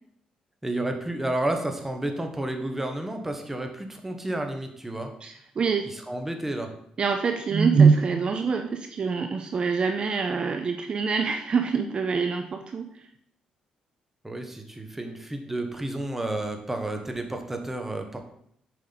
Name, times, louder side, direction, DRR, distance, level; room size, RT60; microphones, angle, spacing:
voice 1, 0.6-5.1 5.8-6.7 14.2-18.2, right 1 dB, 10° right, 5 dB, 1.2 m, -31 dB
voice 2, 5.2-5.9 7.0-12.9, right 5 dB, 45° right, 6 dB, 0.6 m, -24 dB
7.6 x 5.2 x 4.0 m, 0.70 s
cardioid pair, 95°, 2 cm